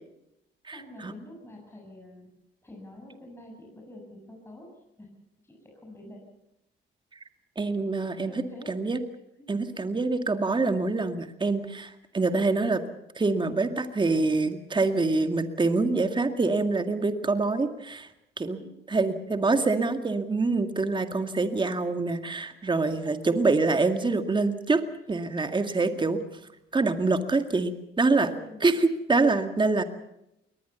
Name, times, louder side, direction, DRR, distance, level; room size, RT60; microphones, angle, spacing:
voice 1, 0.7-2.3 2.6-5.1 5.4-6.2 8.3-8.7 9.4-9.5 18.5-19.0 22.5-23.2 25.8-25.9 28.2-28.6, left 1 dB, 10° left, -1 dB, 7.1 m, -47 dB
voice 2, 7.6-8.3 8.7-9.0 9.5-12.8 13.2-18.1 18.4-18.6 18.9-24.8 25.1-26.2 26.7-28.3 28.6-29.8, right 3 dB, 25° right, 8 dB, 2.0 m, -25 dB
22.0 x 19.5 x 7.0 m, 0.85 s
cardioid pair, 90°, 20 cm